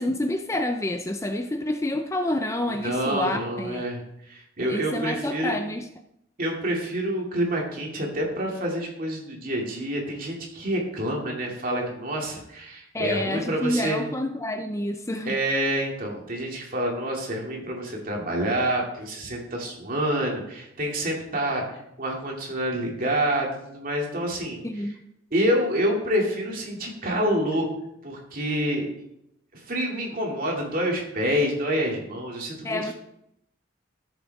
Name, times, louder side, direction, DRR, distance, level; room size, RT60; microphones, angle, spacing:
voice 1, 0.0-3.8 4.6-5.9 12.9-15.4 24.6-25.0 32.6-32.9, left 1 dB, 15° left, 6 dB, 0.4 m, -28 dB
voice 2, 2.8-4.0 4.3-5.5 6.4-14.0 15.2-21.6 22.0-24.6 25.3-27.7 28.0-28.9 29.5-32.9, right 1 dB, 45° right, -1 dB, 2.5 m, -27 dB
13.5 x 7.2 x 3.5 m, 0.79 s
head